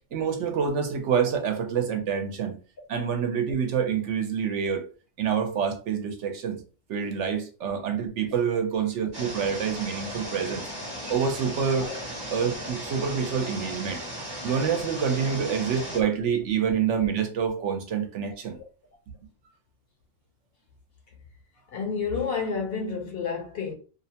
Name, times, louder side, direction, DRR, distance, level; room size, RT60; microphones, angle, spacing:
voice 1, 0.1-2.6 2.9-4.9 5.2-6.6 6.9-10.7 11.1-11.9 12.3-14.0 14.4-18.6, right 7 dB, 70° right, 0.9 m, -27 dB
sound 1, 9.1-16.0, equal, 25° right, 0.7 m, -36 dB
voice 2, 21.7-23.7, left 5 dB, 60° left, 0.8 m, -30 dB
2.6 x 2.0 x 2.7 m
omnidirectional pair, 1.3 m